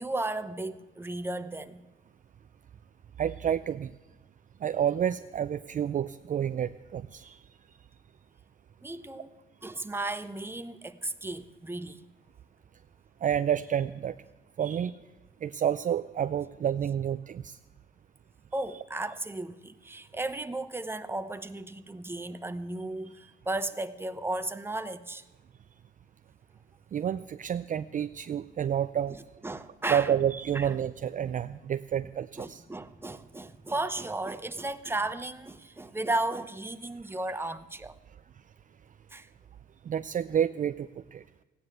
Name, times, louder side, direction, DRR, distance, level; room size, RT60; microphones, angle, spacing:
voice 1, 0.0-1.8 8.8-9.4 9.6-12.0 18.5-25.2 29.4-30.1 30.5-30.7 32.4-37.9 39.1-39.3, right 2 dB, 10° right, 0.9 m, -34 dB
voice 2, 3.2-3.9 4.6-7.4 13.2-14.1 14.6-15.0 15.4-17.6 26.9-29.2 29.9-32.6 39.8-41.2, right 9 dB, 40° right, 0.4 m, -29 dB
15.5 x 9.7 x 8.0 m
cardioid pair, 90°, 20 cm